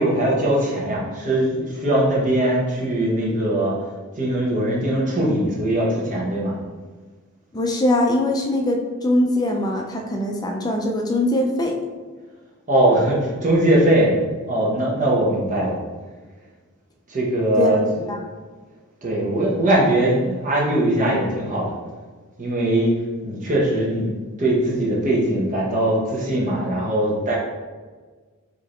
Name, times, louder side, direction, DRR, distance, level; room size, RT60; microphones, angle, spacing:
voice 1, 0.0-3.8 4.2-6.6 12.7-14.2 14.5-15.8 17.1-18.2 19.0-21.7 22.4-23.0 23.2-24.1 24.4-27.4, right 1 dB, 35° right, -4 dB, 1.1 m, -20 dB
voice 2, 7.5-11.7 17.6-17.8 18.1-18.2, left 1 dB, 15° left, 1 dB, 0.4 m, -22 dB
5.0 x 2.9 x 3.1 m, 1.4 s
head